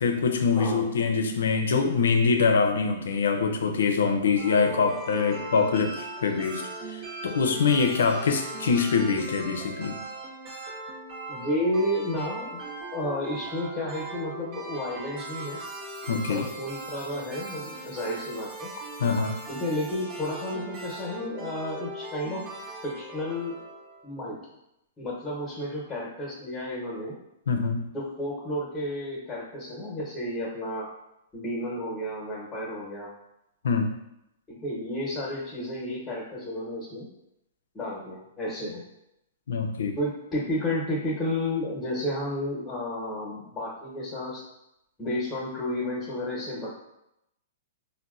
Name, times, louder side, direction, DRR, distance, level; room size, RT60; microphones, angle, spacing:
voice 1, 0.0-6.6 6.9-10.0 16.1-16.4 19.0-19.4 27.5-27.9 33.6-33.9 39.5-40.0, left 5 dB, 80° left, 5 dB, 0.4 m, -24 dB
voice 2, 0.6-0.9 11.3-12.6 12.9-15.6 16.3-18.7 19.5-22.4 22.8-23.6 24.0-24.3 25.0-27.1 27.9-30.9 31.3-33.1 34.5-37.1 37.7-38.8 40.0-44.4 45.0-46.7, left 1 dB, 15° left, -6 dB, 0.9 m, -32 dB
sound 1, 4.4-24.3, right 2 dB, 45° right, 0.8 m, -39 dB
3.9 x 2.1 x 2.4 m, 0.83 s
hypercardioid pair, 140°, 0 cm